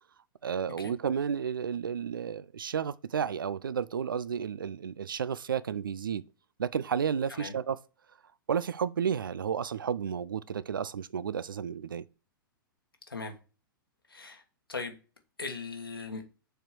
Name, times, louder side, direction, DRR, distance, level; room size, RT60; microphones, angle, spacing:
voice 1, 0.4-6.2 6.6-7.8 8.5-12.0, right 7 dB, 70° right, 0.4 m, -32 dB
voice 2, 14.1-14.4 14.7-14.9 15.4-16.2, left 4 dB, 80° left, 1.4 m, -38 dB
6.6 x 4.5 x 4.5 m
figure-of-eight pair, 105°, 12 cm